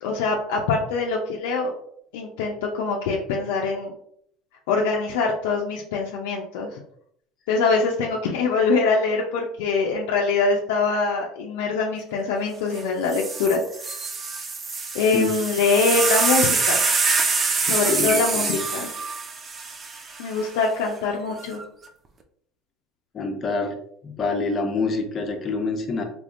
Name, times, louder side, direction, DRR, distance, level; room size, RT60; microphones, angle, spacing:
voice 1, 0.0-1.7 2.1-3.9 4.7-6.8 7.5-14.0 14.9-16.8 17.6-18.9 20.2-21.6, left 4 dB, 85° left, -1 dB, 0.5 m, -23 dB
sound 1, 12.7-12.8 13.1-20.5 21.4-21.8, right 4 dB, 30° right, 0.5 m, -25 dB
voice 2, 17.7-18.6 23.1-23.8 24.0-26.0, left 3 dB, 35° left, 4 dB, 0.7 m, -26 dB
3.4 x 3.2 x 2.5 m, 0.67 s
supercardioid pair, 115°, 0 cm